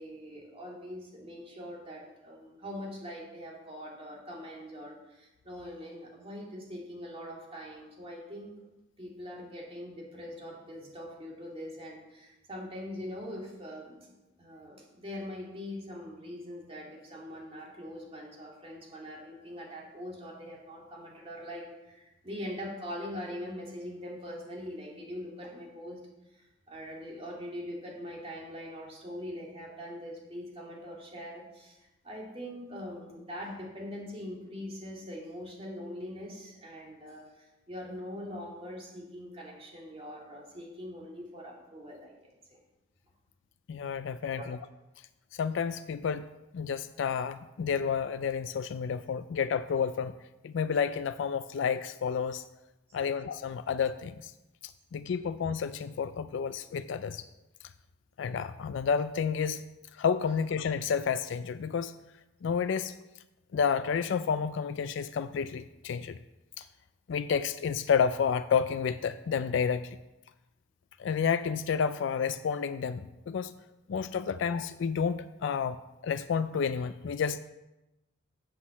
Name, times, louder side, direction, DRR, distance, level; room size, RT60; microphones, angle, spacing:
voice 1, 0.0-8.5 9.0-14.1 14.4-26.0 26.3-42.6 44.3-44.5 53.0-53.1, equal, 30° right, -2 dB, 2.4 m, -42 dB
voice 2, 43.7-44.6 45.3-46.2 46.5-50.1 50.4-52.4 52.9-54.3 54.6-57.2 58.2-59.6 59.9-61.9 62.4-63.0 63.5-66.2 66.6-66.7 67.1-69.9 71.0-73.5 73.9-77.4, left 6 dB, 70° left, 11 dB, 0.3 m, -30 dB
7.5 x 6.2 x 7.0 m, 0.99 s
head